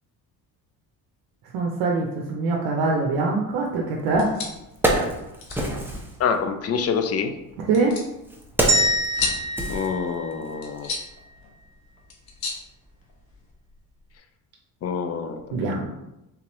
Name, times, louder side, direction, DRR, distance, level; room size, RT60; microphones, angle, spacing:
voice 1, 1.5-4.3 7.7-8.0 15.5-15.9, right 3 dB, 80° right, 0 dB, 0.6 m, -23 dB
sound 1, 4.0-13.5, left 4 dB, 70° left, 0.9 m, -37 dB
Wood, 4.0-4.1 4.5-6.2 7.1-10.5 10.8-10.9, right 1 dB, 5° right, 0.7 m, -27 dB
voice 2, 6.2-7.3 9.7-10.9 14.8-15.7, left 6 dB, 40° left, 7 dB, 0.4 m, -26 dB
sound 2, 8.7-10.9, right 1 dB, 40° right, 1.2 m, -25 dB
3.5 x 2.9 x 3.0 m, 0.91 s
cardioid pair, 95°, 38 cm